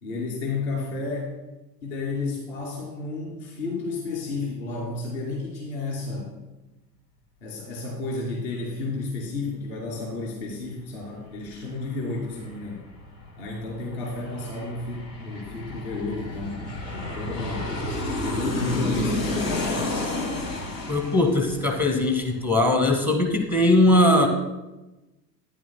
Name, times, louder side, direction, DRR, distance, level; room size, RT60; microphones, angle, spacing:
voice 1, 0.0-1.3 1.8-6.3 7.4-12.8 13.4-16.6 16.9-17.8 18.2-19.9, left 3 dB, 55° left, -3 dB, 3.0 m, -31 dB
Aircraft, 11.1-11.2 11.5-22.8 23.1-23.2, left 2 dB, 75° left, 2.3 m, -31 dB
voice 2, 20.9-24.3, left 1 dB, 20° left, 2 dB, 1.3 m, -20 dB
12.5 x 10.5 x 2.2 m, 1.0 s
figure-of-eight pair, 75°, 49 cm